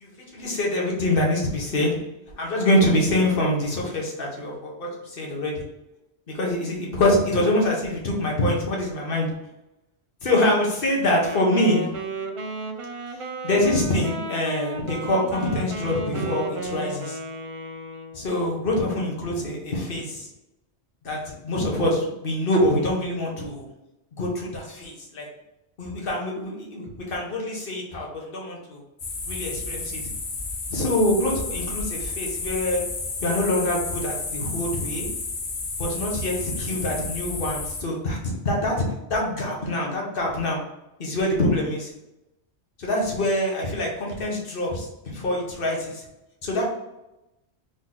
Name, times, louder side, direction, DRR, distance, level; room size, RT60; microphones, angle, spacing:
voice 1, 0.0-2.0 2.4-5.6 6.3-9.3 10.2-11.9 13.4-17.2 18.1-20.3 21.0-23.6 24.2-25.3 25.8-28.8 29.3-30.0 30.7-32.8 33.2-35.1 35.8-38.8 39.1-40.6 41.0-41.9 42.8-46.0 46.4-46.6, left 1 dB, 55° left, -2 dB, 1.3 m, -25 dB
Wind instrument woodwind instrument, 11.0-18.3, right 2 dB, 50° right, 0.4 m, -34 dB
sound 1, 29.0-37.8, left 3 dB, 70° left, 1.2 m, -32 dB
3.9 x 3.0 x 3.9 m, 0.93 s
omnidirectional pair, 1.2 m